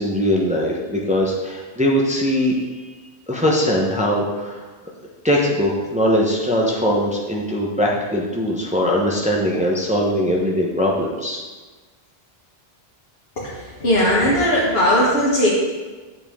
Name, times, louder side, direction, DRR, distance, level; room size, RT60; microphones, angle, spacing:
voice 1, 0.0-2.9 3.3-4.7 5.2-11.4, equal, 5° right, -2 dB, 0.9 m, -21 dB
voice 2, 13.8-15.5, equal, 70° left, -8 dB, 1.8 m, -17 dB
8.7 x 6.5 x 3.7 m, 1.3 s
omnidirectional pair, 1.1 m